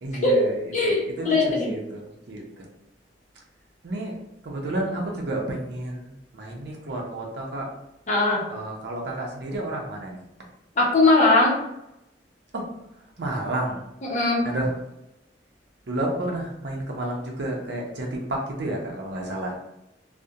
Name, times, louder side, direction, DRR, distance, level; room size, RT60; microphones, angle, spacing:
voice 1, 0.0-2.7 3.8-4.2 4.4-7.7 8.5-10.2 12.5-12.7 13.2-13.9 14.4-14.8 15.9-19.6, right 1 dB, 70° right, 0 dB, 0.6 m, -31 dB
voice 2, 0.7-1.7 8.1-8.4 10.8-11.6 14.0-14.4, left 2 dB, 45° left, -3 dB, 0.6 m, -20 dB
2.4 x 2.1 x 2.7 m, 0.87 s
head